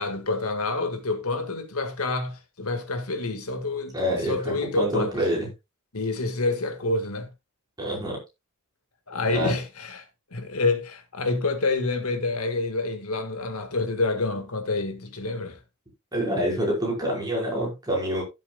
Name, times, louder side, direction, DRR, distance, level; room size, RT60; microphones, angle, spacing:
voice 1, 0.0-5.1 5.9-7.3 9.1-10.0 10.3-15.6, left 3 dB, 75° left, 1.9 m, -28 dB
voice 2, 3.9-5.5 7.8-8.2 9.3-9.5 16.1-18.2, equal, 20° right, 5.1 m, -26 dB
15.5 x 7.5 x 2.4 m
head